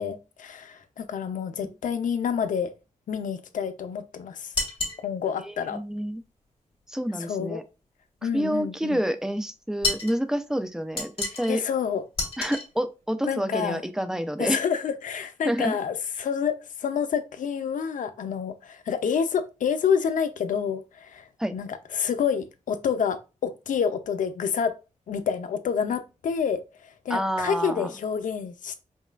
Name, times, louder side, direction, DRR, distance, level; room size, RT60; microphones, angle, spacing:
voice 1, 0.0-2.7 3.1-4.5 5.0-5.8 7.3-7.6 8.2-9.0 11.5-12.0 13.2-13.8 14.4-21.3 21.5-24.7 25.1-28.8, left 7 dB, 90° left, 0.5 m, -28 dB
sound 1, 4.5-5.0 9.8-10.2 11.0-11.5 12.2-12.7, left 3 dB, 40° left, 1.8 m, -29 dB
voice 2, 5.5-6.2 6.9-7.6 8.2-11.6 12.4-14.6 15.4-15.8 21.4-21.5 27.1-27.9, equal, 5° right, 0.4 m, -28 dB
5.2 x 2.2 x 2.3 m
wide cardioid pair, 125°, 13 cm